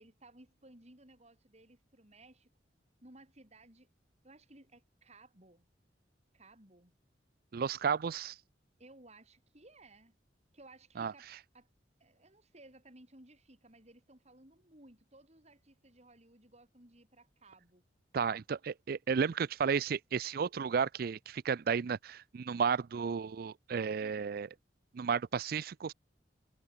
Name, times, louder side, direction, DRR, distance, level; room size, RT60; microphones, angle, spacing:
voice 1, 0.0-2.5 3.0-3.9 4.2-5.7 6.3-6.9 8.8-10.2 10.5-11.3 11.5-11.7 12.0-17.8 23.8-24.4, right 2 dB, 40° right, 6.8 m, -59 dB
voice 2, 7.5-8.3 11.0-11.1 18.1-24.5 24.9-25.9, right 6 dB, 55° right, 0.4 m, -33 dB
head